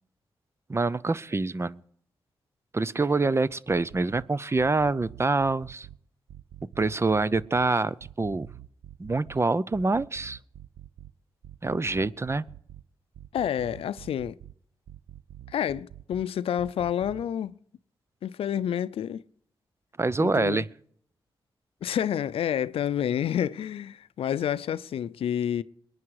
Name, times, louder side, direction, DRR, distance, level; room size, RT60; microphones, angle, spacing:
voice 1, 0.7-1.8 2.7-5.9 6.8-8.5 9.0-10.4 11.6-12.4 20.0-20.7, right 3 dB, 30° right, 0.6 m, -26 dB
sound 1, 3.5-4.2 4.6-6.0 6.3-7.7 8.0-9.4 9.7-11.1 11.4-12.8 13.1-14.5 14.9-16.2 16.6-17.2, right 12 dB, 85° right, 0.6 m, -46 dB
voice 2, 13.3-14.4 15.5-17.5 18.2-19.2 20.2-20.7 21.8-25.6, left 9 dB, 85° left, 0.5 m, -29 dB
21.5 x 9.7 x 4.8 m
cardioid pair, 60°, 9 cm